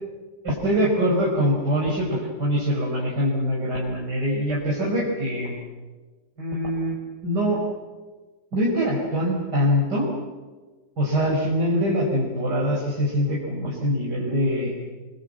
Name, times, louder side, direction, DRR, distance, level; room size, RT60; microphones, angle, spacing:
voice 1, 0.4-5.6 6.4-7.0 7.2-7.6 8.5-10.1 11.0-14.7, equal, 60° right, -4 dB, 5.7 m, -23 dB
27.0 x 23.5 x 7.7 m, 1.3 s
omnidirectional pair, 2.0 m